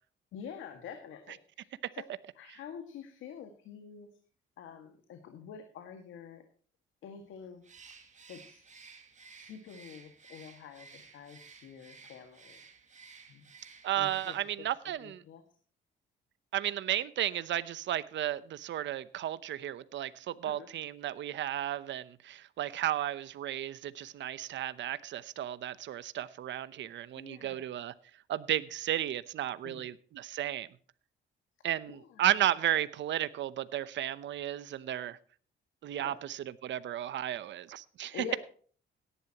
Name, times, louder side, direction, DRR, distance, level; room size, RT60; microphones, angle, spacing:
voice 1, 0.3-2.1 2.4-4.2 4.6-6.5 7.0-7.9 8.3-8.6 9.3-12.6 13.3-13.5 13.9-14.7 15.0-15.4 20.4-20.7 27.2-27.6 29.6-29.8 31.9-32.2 35.9-36.2 38.1-38.4, left 7 dB, 80° left, 2.0 m, -47 dB
Bird, 7.6-14.7, right 5 dB, 35° right, 2.3 m, -55 dB
voice 2, 13.8-15.2 16.5-27.9 28.3-30.7 31.6-35.2 35.8-38.1, right 12 dB, 70° right, 0.8 m, -34 dB
17.5 x 11.0 x 3.0 m
cardioid pair, 90°, 20 cm